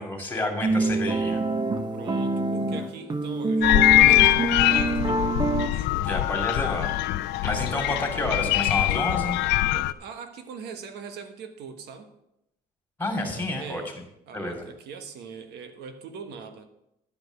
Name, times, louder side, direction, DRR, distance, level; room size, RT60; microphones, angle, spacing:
voice 1, 0.0-1.4 6.0-6.9 7.4-9.4 13.0-13.8 14.3-14.6, left 2 dB, 10° left, 3 dB, 2.6 m, -29 dB
sound 1, 0.6-5.7, right 3 dB, 25° right, 1.0 m, -26 dB
voice 2, 1.9-5.2 5.6-6.2 7.3-7.7 9.7-12.1 13.2-13.9 14.3-16.7, right 6 dB, 80° right, 7 dB, 1.3 m, -42 dB
sound 2, 3.6-9.9, left 16 dB, 85° left, 0.4 m, -22 dB
10.5 x 5.3 x 7.9 m, 0.81 s
cardioid pair, 110°, 17 cm